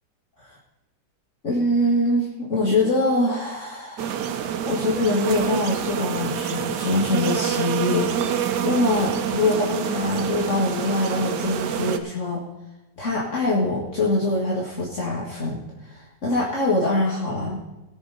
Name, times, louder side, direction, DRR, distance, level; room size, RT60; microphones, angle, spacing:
voice 1, 1.4-4.2 4.7-12.5 13.0-17.6, left 2 dB, 45° left, -5 dB, 2.4 m, -24 dB
sound 1, 4.0-12.0, right 8 dB, 85° right, 1.4 m, -27 dB
18.5 x 6.9 x 4.2 m, 0.99 s
omnidirectional pair, 1.8 m